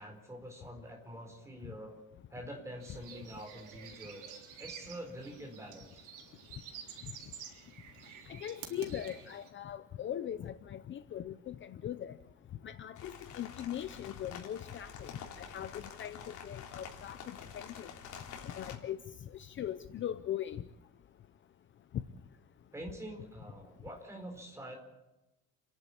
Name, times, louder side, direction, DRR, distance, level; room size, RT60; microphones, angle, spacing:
voice 1, 0.0-2.0 2.3-6.1 22.7-24.8, right 1 dB, 10° right, 2 dB, 4.5 m, -46 dB
sound 1, 2.8-9.5, right 7 dB, 65° right, 3.8 m, -50 dB
voice 2, 8.3-12.1 12.6-15.1 15.5-17.9 18.4-19.0 19.3-20.6, left 10 dB, 35° left, 11 dB, 0.7 m, -40 dB
sound 2, 13.0-18.8, left 7 dB, 60° left, 3.5 m, -48 dB
29.0 x 11.0 x 8.7 m, 0.94 s
cardioid pair, 175°, 33 cm